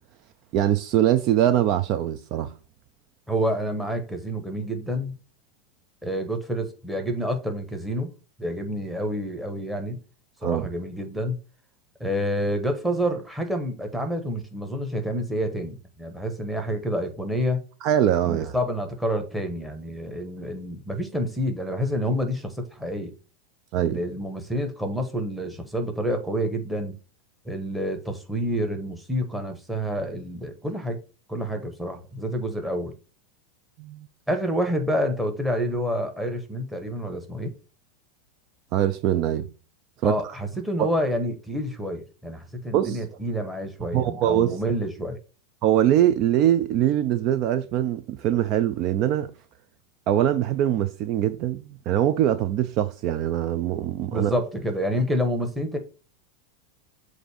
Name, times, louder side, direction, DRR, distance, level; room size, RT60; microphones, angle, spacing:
voice 1, 0.5-2.5 10.4-10.7 17.8-18.6 23.7-24.0 33.8-34.1 38.7-39.5 40.0-40.4 40.8-40.9 42.7-43.1 43.9-44.6 45.6-49.3 50.1-54.4, right 11 dB, 40° right, 0.4 m, -23 dB
voice 2, 3.3-5.2 6.0-8.1 8.4-10.0 10.4-11.4 12.0-17.6 18.3-23.1 23.8-27.0 27.4-31.0 31.3-32.9 34.3-37.5 40.0-45.2 54.1-55.8, equal, 5° right, 1.1 m, -28 dB
7.7 x 2.6 x 4.9 m
supercardioid pair, 150°, 0 cm